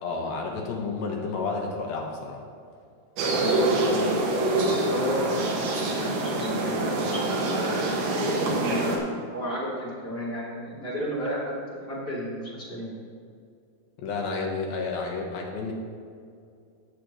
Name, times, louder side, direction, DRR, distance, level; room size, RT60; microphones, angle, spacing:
voice 1, 0.0-2.4 4.7-4.8 14.0-15.7, left 4 dB, 70° left, 0 dB, 2.9 m, -31 dB
sound 1, 3.2-9.0, right 2 dB, 70° right, 3.2 m, -25 dB
voice 2, 3.3-4.1 4.8-12.9, equal, 15° left, -8 dB, 2.5 m, -33 dB
18.0 x 6.8 x 3.2 m, 2.3 s
omnidirectional pair, 4.6 m